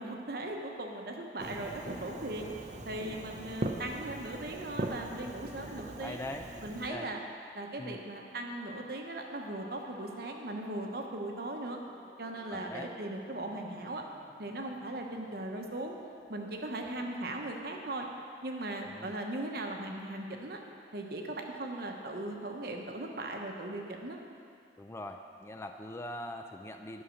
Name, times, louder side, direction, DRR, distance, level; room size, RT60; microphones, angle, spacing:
voice 1, 0.0-2.5 2.8-6.2 6.6-7.2 7.5-11.8 12.2-14.0 14.4-15.9 16.3-18.1 18.4-20.6 20.9-24.2, right 1 dB, 55° right, 2 dB, 1.0 m, -38 dB
Fireworks, 1.4-6.9, right 2 dB, 40° right, 0.6 m, -40 dB
voice 2, 5.6-6.5 6.9-7.1 7.8-8.0 12.5-12.9 18.9-19.1 24.8-27.0, left 1 dB, 15° left, 5 dB, 0.3 m, -42 dB
sound 1, 7.8-17.1, left 1 dB, 40° left, 2.3 m, -58 dB
11.0 x 5.6 x 6.4 m, 2.4 s
head